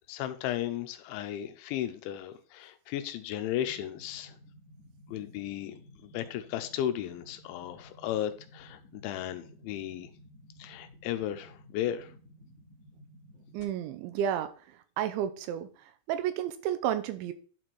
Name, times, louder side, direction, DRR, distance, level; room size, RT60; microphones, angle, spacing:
voice 1, 0.1-4.4 5.1-5.8 6.0-10.1 10.6-12.1, left 11 dB, 85° left, 3.1 m, -35 dB
sound 1, 3.6-13.6, equal, 55° left, 2.4 m, -55 dB
voice 2, 13.5-17.3, right 10 dB, 85° right, 3.1 m, -32 dB
11.0 x 4.3 x 4.6 m
omnidirectional pair, 5.4 m